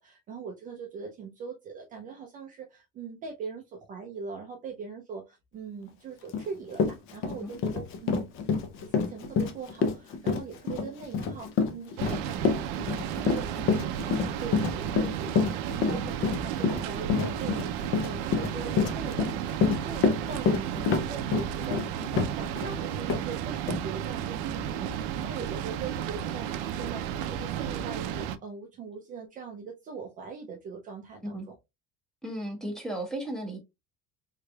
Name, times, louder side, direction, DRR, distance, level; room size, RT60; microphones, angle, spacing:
voice 1, 0.0-8.3 8.8-31.5, right 5 dB, 30° right, 0.4 m, -41 dB
Run, 6.3-6.4 6.7-22.7 23.1-23.2 23.7-23.8, left 5 dB, 45° left, 0.6 m, -27 dB
sound 1, 12.0-28.4, right 9 dB, 80° right, 0.5 m, -33 dB
voice 2, 32.2-33.6, right 1 dB, ahead, 0.8 m, -35 dB
3.6 x 3.2 x 2.2 m
cardioid pair, 165°, 29 cm